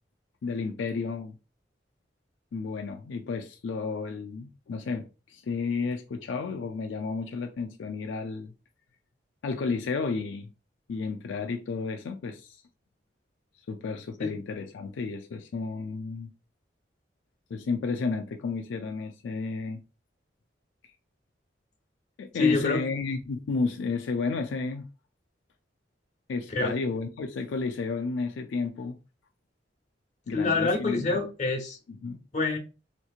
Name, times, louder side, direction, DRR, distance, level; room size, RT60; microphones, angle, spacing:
voice 1, 0.4-1.4 2.5-8.5 9.4-10.5 10.9-12.6 13.7-16.3 17.5-19.8 20.8-20.9 22.2-24.9 26.3-29.0 30.3-31.2 32.0-32.2, left 4 dB, 80° left, 0.4 m, -32 dB
voice 2, 22.3-22.8 26.5-26.7 30.3-31.8 32.3-32.6, left 3 dB, 40° left, 1.0 m, -26 dB
3.5 x 2.9 x 2.4 m
head